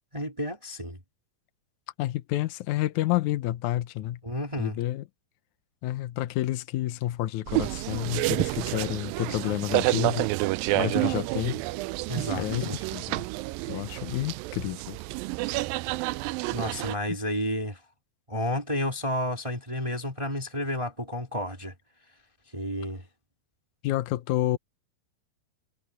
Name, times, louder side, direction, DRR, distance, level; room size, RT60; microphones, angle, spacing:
voice 1, 0.1-1.0 4.2-4.8 12.1-12.8 16.5-17.8 18.3-21.7 22.5-23.0, equal, 15° right, 1.1 m, -31 dB
voice 2, 2.0-4.2 4.6-5.0 5.8-10.3 10.7-11.6 12.3-13.3 13.7-15.0 23.8-24.6, left 15 dB, 75° left, 1.8 m, -29 dB
sound 1, 7.5-17.0, right 20 dB, 85° right, 2.1 m, -29 dB
omnidirectional pair, 4.5 m